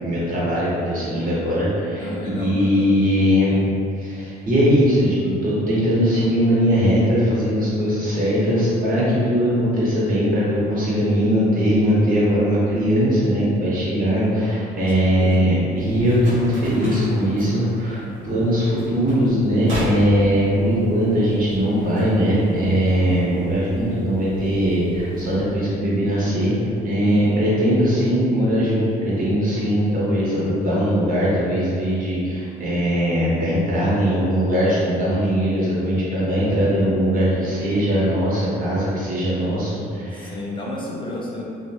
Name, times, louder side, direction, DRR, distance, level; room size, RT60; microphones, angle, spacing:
voice 1, 0.0-3.6 4.0-26.5 26.8-40.3, equal, 50° right, -7 dB, 1.0 m, -20 dB
voice 2, 2.0-2.9 14.1-15.5 27.0-27.3 40.1-41.4, left 1 dB, 25° left, -4 dB, 0.4 m, -32 dB
sound 1, 15.7-25.6, right 1 dB, 80° right, 0.9 m, -33 dB
2.7 x 2.2 x 2.7 m, 2.5 s
cardioid pair, 90°, 18 cm